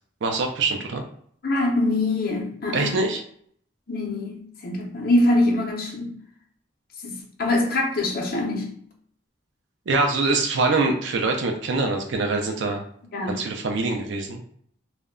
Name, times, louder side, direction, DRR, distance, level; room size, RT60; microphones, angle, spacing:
voice 1, 0.2-1.0 2.7-3.2 9.9-12.8 13.3-14.4, right 3 dB, 65° right, 0.4 m, -24 dB
voice 2, 1.4-3.0 3.9-6.2 7.0-8.7 13.1-13.6, left 2 dB, 50° left, 0.6 m, -24 dB
2.2 x 2.1 x 3.6 m
head